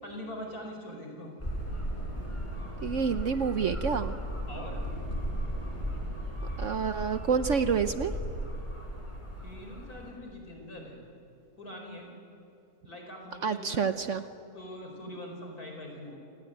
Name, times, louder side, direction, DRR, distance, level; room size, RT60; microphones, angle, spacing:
voice 1, 0.0-1.3 4.5-4.9 9.4-11.0 11.6-12.1 12.8-13.9 14.5-16.1, left 1 dB, 65° left, 2 dB, 5.3 m, -43 dB
sound 1, 1.4-10.1, equal, 20° left, 4.9 m, -36 dB
voice 2, 2.8-4.1 6.6-8.1 13.4-14.2, right 6 dB, 60° right, 10 dB, 1.0 m, -28 dB
28.5 x 18.5 x 9.0 m, 2.6 s
omnidirectional pair, 1.7 m